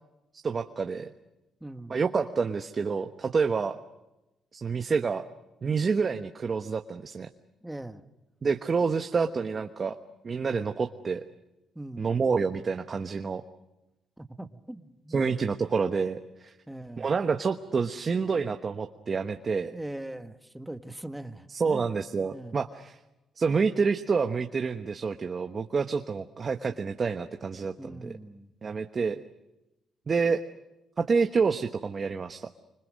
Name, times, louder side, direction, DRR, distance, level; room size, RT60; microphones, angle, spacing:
voice 1, 0.4-1.1 1.9-3.7 4.5-5.2 5.6-7.3 8.4-10.0 10.2-11.2 12.0-13.4 15.1-16.5 17.0-19.7 21.5-23.0 23.4-28.1 28.6-29.2 30.1-30.4 31.0-32.5, right 5 dB, 40° right, 7 dB, 1.1 m, -28 dB
voice 2, 1.6-2.0 7.6-8.0 11.7-12.1 14.2-15.3 16.7-17.1 19.7-21.9 22.2-22.6 27.8-28.5, right 1 dB, 5° right, 9 dB, 1.5 m, -41 dB
25.5 x 25.5 x 6.4 m, 0.97 s
cardioid pair, 90°, 0 cm